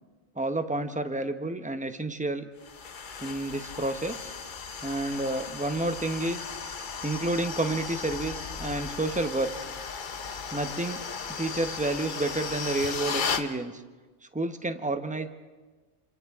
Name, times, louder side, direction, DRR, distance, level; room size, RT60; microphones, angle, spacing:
voice 1, 0.4-2.5 3.2-4.3 4.8-6.6 7.0-9.5 10.5-11.0 11.4-13.8 14.3-15.3, right 2 dB, 5° right, 8 dB, 0.6 m, -30 dB
sound 1, 2.6-13.5, left 5 dB, 40° left, 0.9 m, -36 dB
28.0 x 26.0 x 3.6 m, 1.3 s
omnidirectional pair, 1.4 m